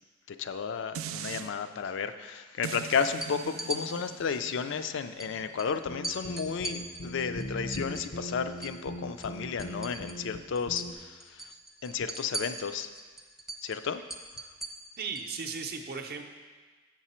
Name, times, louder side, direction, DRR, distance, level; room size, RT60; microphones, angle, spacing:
voice 1, 0.3-11.5 11.8-12.9 13.6-14.0, left 6 dB, 65° left, 10 dB, 0.4 m, -33 dB
sound 1, 0.9-1.5 2.6-7.8 8.2-8.3, right 8 dB, 85° right, 0.4 m, -43 dB
sound 2, 3.2-3.8 5.2-5.3 5.6-5.7 6.0-8.8 9.1-10.3 10.6-10.9 11.2-15.3, right 2 dB, ahead, 0.5 m, -40 dB
sound 3, 5.8-10.4 10.7-10.9, equal, 90° left, 0.8 m, -39 dB
voice 2, 15.0-16.2, right 5 dB, 50° right, 5 dB, 0.6 m, -36 dB
7.5 x 6.1 x 4.3 m, 1.4 s
head